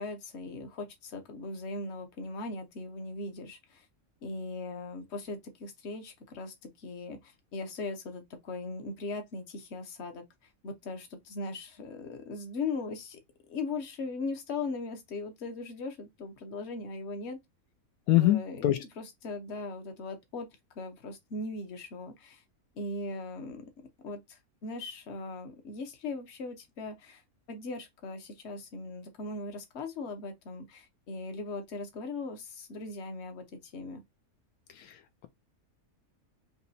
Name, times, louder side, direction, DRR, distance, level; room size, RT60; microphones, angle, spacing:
voice 1, 0.0-3.9 4.2-10.2 10.6-13.2 13.5-17.4 18.1-22.4 22.7-23.6 24.0-27.2 27.5-34.0, left 3 dB, 50° left, 1.2 m, -39 dB
voice 2, 18.1-18.8 34.8-34.9, left 14 dB, 80° left, 1.0 m, -24 dB
5.3 x 2.9 x 2.7 m
omnidirectional pair, 1.5 m